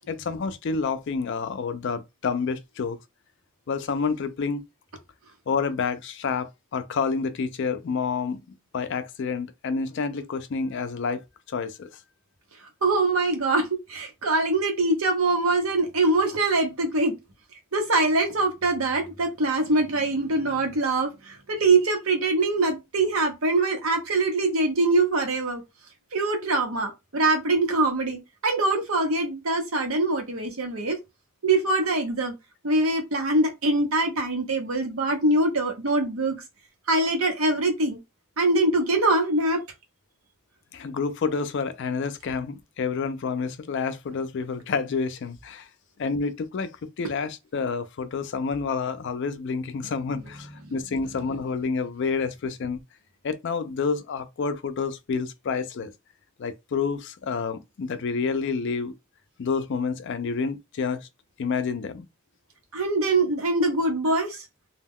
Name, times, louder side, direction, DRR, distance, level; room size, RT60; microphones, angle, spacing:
voice 1, 0.1-3.0 3.7-4.6 5.5-8.4 8.7-11.9 40.7-45.7 46.0-52.8 53.2-55.9 56.4-58.9 59.4-61.1 61.4-62.1, left 5 dB, 55° left, 0.4 m, -29 dB
voice 2, 12.8-17.1 17.7-25.6 26.1-31.0 31.4-32.3 32.6-36.4 36.9-38.0 38.4-39.6 50.6-50.7 62.7-64.4, right 2 dB, 75° right, 0.8 m, -23 dB
2.2 x 2.2 x 3.5 m
head